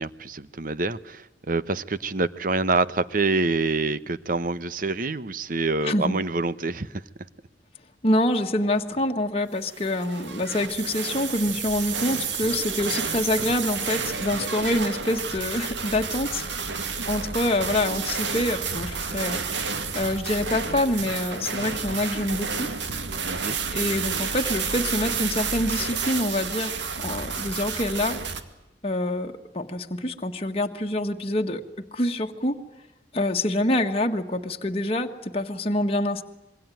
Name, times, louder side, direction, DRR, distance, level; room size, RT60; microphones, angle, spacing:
voice 1, 0.0-7.0 23.2-23.6, right 3 dB, 50° right, 15 dB, 1.0 m, -26 dB
voice 2, 5.8-6.2 8.0-16.5 17.1-22.7 23.7-26.8 27.0-28.2 28.8-32.6 33.1-36.2, left 1 dB, 35° left, 3 dB, 1.6 m, -26 dB
sound 1, 9.7-28.4, right 5 dB, 80° right, 2.3 m, -30 dB
26.5 x 22.5 x 9.2 m, 0.94 s
head